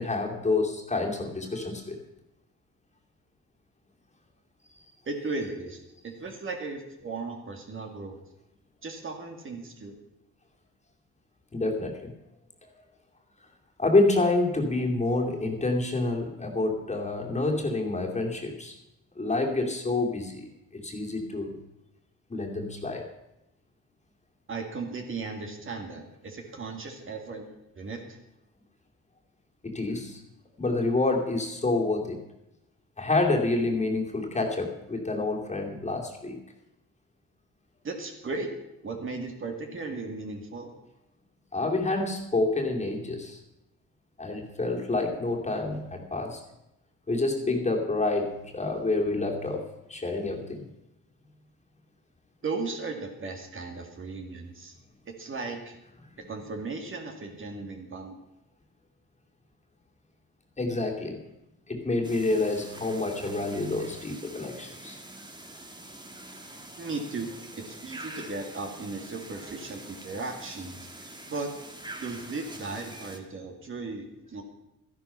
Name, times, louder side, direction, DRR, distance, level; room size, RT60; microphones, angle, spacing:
voice 1, 0.0-2.0 11.5-12.1 12.6-12.7 13.8-18.7 19.2-20.5 20.7-21.6 22.3-23.1 29.6-30.2 30.6-32.2 33.0-36.4 41.5-43.4 44.2-46.4 47.1-50.7 60.6-61.2 61.7-65.0, left 2 dB, 25° left, 1 dB, 2.5 m, -28 dB
voice 2, 5.1-5.8 6.0-8.2 8.8-9.9 24.5-27.5 27.8-28.2 37.8-38.5 38.8-40.7 52.4-54.7 55.2-55.8 56.2-58.2 66.8-67.3 67.6-71.5 72.0-74.4, right 3 dB, 45° right, 3 dB, 2.3 m, -36 dB
sound 1, 62.0-73.2, right 2 dB, 15° right, 1.7 m, -45 dB
12.5 x 11.0 x 5.7 m, 0.89 s
cardioid pair, 90°, 30 cm